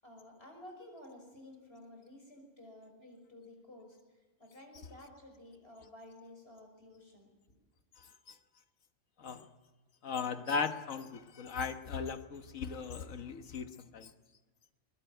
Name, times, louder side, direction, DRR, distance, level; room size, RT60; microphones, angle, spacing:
voice 1, 0.0-4.0 4.4-7.6, left 1 dB, 45° left, 3 dB, 6.1 m, -53 dB
voice 2, 10.0-14.1, left 5 dB, 70° left, 8 dB, 1.6 m, -37 dB
22.0 x 20.5 x 9.2 m, 1.2 s
omnidirectional pair, 1.5 m